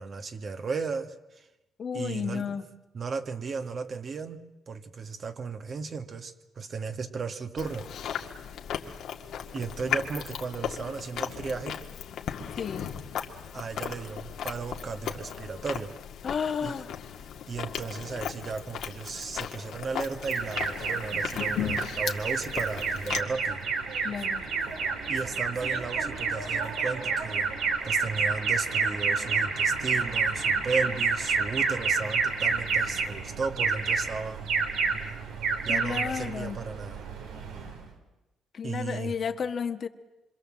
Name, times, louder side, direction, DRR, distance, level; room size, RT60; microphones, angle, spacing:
voice 1, 0.0-1.5 1.9-2.6 2.9-4.4 4.7-7.9 9.5-11.8 13.5-15.9 16.6-16.7 17.5-23.6 25.1-27.6 27.8-34.5 35.6-37.1 38.6-39.1, right 4 dB, 45° right, 7 dB, 1.9 m, -35 dB
voice 2, 1.8-2.6 12.5-12.8 16.2-16.9 24.0-24.4 35.7-36.6 38.5-39.9, left 6 dB, 50° left, 8 dB, 1.5 m, -32 dB
Chewing mastication, 7.6-23.2, left 8 dB, 75° left, 2.0 m, -36 dB
Alarm, 20.2-37.9, right 5 dB, 90° right, 3.6 m, -29 dB
26.0 x 25.5 x 7.6 m, 0.99 s
cardioid pair, 90°, 0 cm